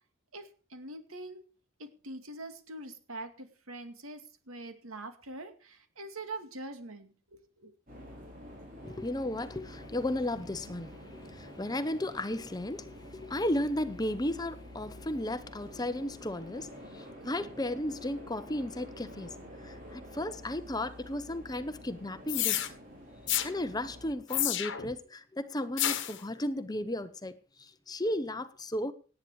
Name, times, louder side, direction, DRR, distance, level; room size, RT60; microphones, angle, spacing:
voice 1, 0.3-1.4 1.8-7.7, right 2 dB, 85° right, 2.3 m, -44 dB
sound 1, 7.9-24.2, equal, 40° right, 5.2 m, -49 dB
voice 2, 8.8-22.6 23.4-28.9, left 1 dB, 20° left, 0.8 m, -34 dB
sound 2, 22.3-22.7 23.3-23.5 24.3-24.9 25.8-26.2, left 13 dB, 60° left, 1.4 m, -30 dB
18.0 x 9.5 x 4.8 m
head